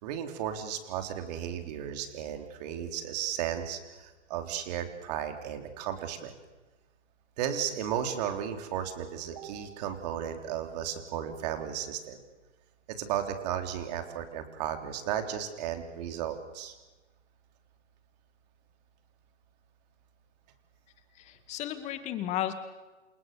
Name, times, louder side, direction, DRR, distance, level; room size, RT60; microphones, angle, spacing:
voice 1, 0.0-6.3 7.4-12.2 13.0-16.7, right 9 dB, 35° right, 6 dB, 3.6 m, -34 dB
voice 2, 21.2-22.5, left 12 dB, 20° left, 9 dB, 2.1 m, -33 dB
28.5 x 28.0 x 7.0 m, 1.2 s
hypercardioid pair, 140°, 36 cm